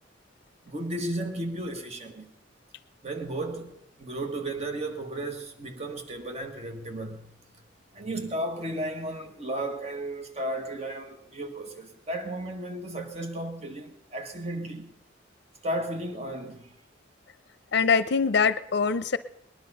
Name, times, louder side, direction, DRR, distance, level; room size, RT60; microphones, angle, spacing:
voice 1, 0.7-2.3 3.0-7.3 7.9-14.9 15.6-16.8, right 1 dB, 35° right, 1.4 m, -34 dB
voice 2, 17.7-19.2, left 5 dB, 60° left, 0.6 m, -23 dB
20.0 x 10.5 x 5.5 m
head